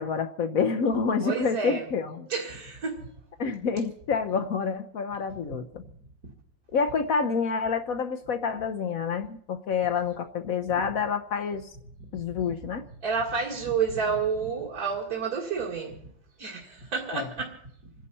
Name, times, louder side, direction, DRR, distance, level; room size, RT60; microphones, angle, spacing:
voice 1, 0.0-2.3 3.4-5.8 6.7-11.7 12.1-12.8 17.1-17.3, left 5 dB, 60° left, 1.0 m, -28 dB
voice 2, 1.2-1.8 2.3-3.1 13.0-16.0 16.4-17.6, right 5 dB, 55° right, 2.6 m, -30 dB
27.5 x 11.0 x 4.2 m
omnidirectional pair, 2.0 m